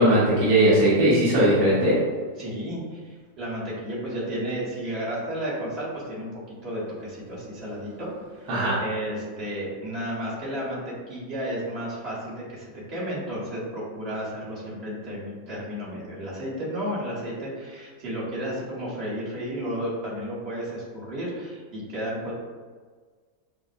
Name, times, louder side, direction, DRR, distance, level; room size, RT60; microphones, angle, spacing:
voice 1, 0.0-2.0 8.5-8.8, right 1 dB, 60° right, -9 dB, 1.2 m, -19 dB
voice 2, 2.4-6.3 6.6-8.1 8.3-8.5 8.8-22.3, equal, 40° right, -7 dB, 1.2 m, -32 dB
5.2 x 2.1 x 2.4 m, 1.5 s
omnidirectional pair, 1.9 m